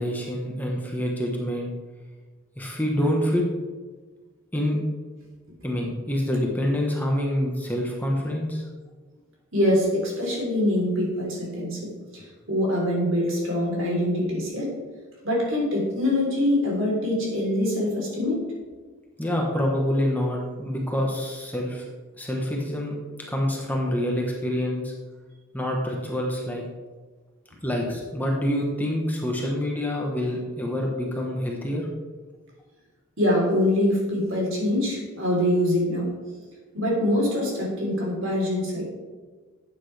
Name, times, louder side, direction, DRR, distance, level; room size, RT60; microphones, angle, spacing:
voice 1, 0.0-1.7 2.6-3.4 4.5-4.8 5.6-8.7 19.2-21.9 22.2-24.9 25.5-26.6 27.6-31.9, left 1 dB, 10° left, -1 dB, 1.2 m, -26 dB
voice 2, 9.5-14.7 15.2-18.4 33.2-36.1 36.7-38.9, left 1 dB, 65° right, -3 dB, 3.6 m, -24 dB
12.0 x 8.6 x 3.4 m, 1.4 s
head